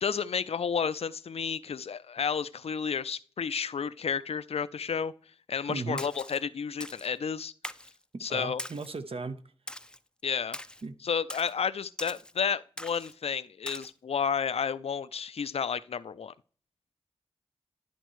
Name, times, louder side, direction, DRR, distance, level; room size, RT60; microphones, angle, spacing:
voice 1, 0.0-5.1 5.5-7.5 8.2-8.6 10.2-10.6 11.0-16.3, left 6 dB, 70° left, 0.4 m, -31 dB
voice 2, 5.7-6.0 8.1-9.4 10.8-11.0, right 4 dB, 65° right, 0.8 m, -36 dB
Splash splatter, 6.0-6.4 6.8-7.1 7.6-8.0 8.6-9.0 9.7-10.0 10.5-10.8 11.3-11.5 12.0-12.3 12.8-13.1 13.7-13.9, left 1 dB, 10° left, 0.4 m, -41 dB
12.0 x 4.4 x 3.1 m
cardioid pair, 45°, 11 cm